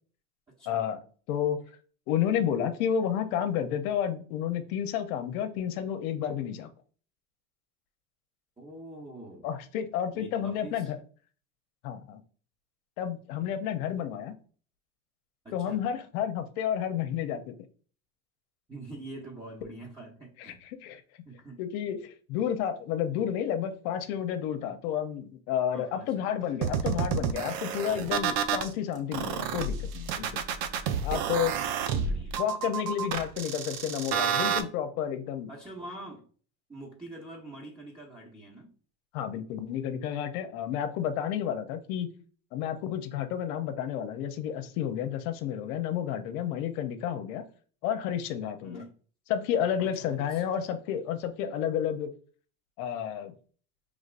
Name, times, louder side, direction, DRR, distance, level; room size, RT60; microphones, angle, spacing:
voice 1, 0.7-1.0 1.3-1.6 2.1-6.7 9.4-11.0 11.8-12.2 13.0-14.4 15.5-17.5 20.4-21.0 21.6-30.4 31.0-31.5 32.4-35.5 39.1-42.1 42.5-47.4 47.8-48.8 49.3-52.1 52.8-53.3, left 9 dB, 75° left, 0.8 m, -31 dB
voice 2, 8.6-9.5 10.1-10.9 15.4-15.8 18.7-20.6 21.2-21.6 25.7-26.6 31.0-32.8 35.5-36.2 36.7-38.7 48.6-48.9 49.8-50.6, right 2 dB, 10° right, 1.1 m, -45 dB
sound 1, 26.6-28.7 29.1-34.6, right 7 dB, 60° right, 0.6 m, -30 dB
5.1 x 3.7 x 2.5 m
supercardioid pair, 100°, 43 cm